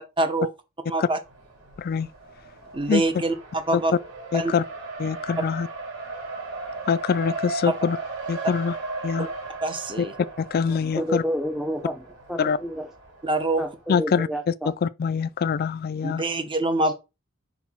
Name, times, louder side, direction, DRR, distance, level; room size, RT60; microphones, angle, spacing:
voice 1, 0.2-0.5 0.9-1.2 2.7-3.9 4.3-4.5 9.6-10.1 13.2-13.6 16.0-16.9, right 2 dB, 25° right, 1.0 m, -25 dB
Race car auto racing, 1.2-13.9, right 3 dB, 90° right, 3.8 m, -37 dB
voice 2, 1.8-2.1 2.9-3.0 3.7-3.8 4.3-4.6 5.0-5.7 6.9-8.0 8.3-8.8 9.0-9.3 10.0-10.1 10.4-11.2 12.4-12.6 13.9-16.2, left 6 dB, 45° left, 0.3 m, -24 dB
voice 3, 11.0-12.0 12.3-12.9 13.6-14.7, equal, ahead, 0.6 m, -29 dB
4.6 x 4.5 x 5.6 m
head